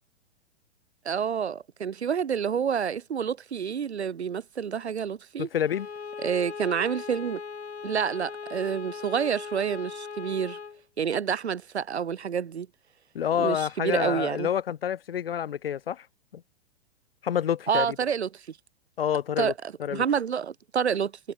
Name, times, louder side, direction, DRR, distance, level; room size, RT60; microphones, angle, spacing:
voice 1, 1.0-5.5 6.2-7.4 7.8-10.6 11.0-12.7 13.3-14.5 17.7-18.6 19.4-19.5 19.9-21.1, right 7 dB, 75° right, 0.7 m, -28 dB
voice 2, 5.4-5.9 13.1-16.1 16.3-16.4 17.2-17.9 19.0-19.5 19.8-20.0, left 9 dB, 60° left, 1.3 m, -28 dB
Bowed string instrument, 5.6-10.8, left 6 dB, 80° left, 1.2 m, -39 dB
figure-of-eight pair, 110°, 33 cm